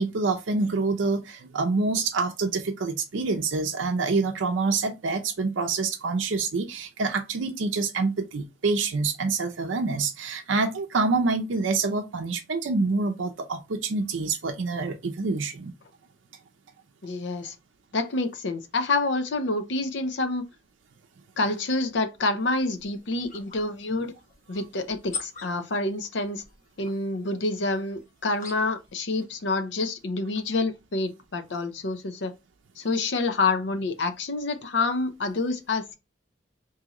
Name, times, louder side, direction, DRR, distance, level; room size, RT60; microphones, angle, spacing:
voice 1, 0.0-15.7, right 3 dB, 80° right, 0.5 m, -26 dB
voice 2, 17.0-17.6 17.9-20.4 21.4-24.1 24.5-26.4 26.8-32.3 32.8-36.0, left 3 dB, 70° left, 0.6 m, -27 dB
sound 1, 22.4-28.9, left 5 dB, 40° left, 0.9 m, -44 dB
3.7 x 2.7 x 2.9 m
head